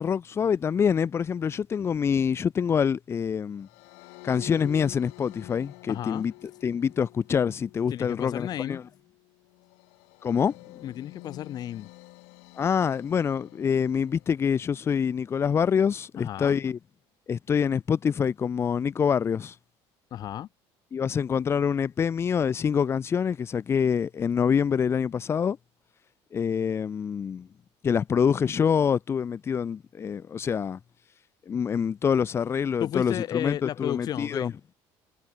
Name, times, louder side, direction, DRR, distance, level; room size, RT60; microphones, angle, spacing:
voice 1, 0.0-3.7 4.2-6.3 6.6-8.8 10.2-10.5 12.6-16.8 17.3-19.5 20.9-25.6 26.3-27.5 27.8-30.8 31.5-34.5, left 7 dB, 25° left, 1.6 m, -26 dB
sound 1, 3.6-14.9, left 32 dB, 90° left, 7.1 m, -49 dB
voice 2, 5.9-6.3 7.9-8.8 10.8-11.9 16.1-16.6 20.1-20.5 32.8-34.5, left 11 dB, 40° left, 1.5 m, -33 dB
cardioid pair, 165°, 10 cm